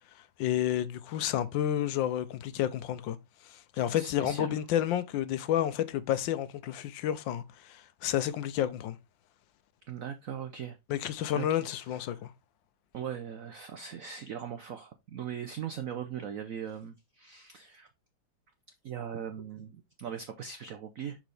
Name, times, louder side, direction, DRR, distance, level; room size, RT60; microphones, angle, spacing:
voice 1, 0.4-3.2 3.5-9.0 10.9-12.3, left 11 dB, 75° left, 1.3 m, -30 dB
voice 2, 3.7-4.6 9.9-10.8 11.3-12.0 12.9-17.9 18.8-21.2, right 8 dB, 80° right, 0.7 m, -40 dB
6.1 x 5.0 x 3.3 m
omnidirectional pair, 2.2 m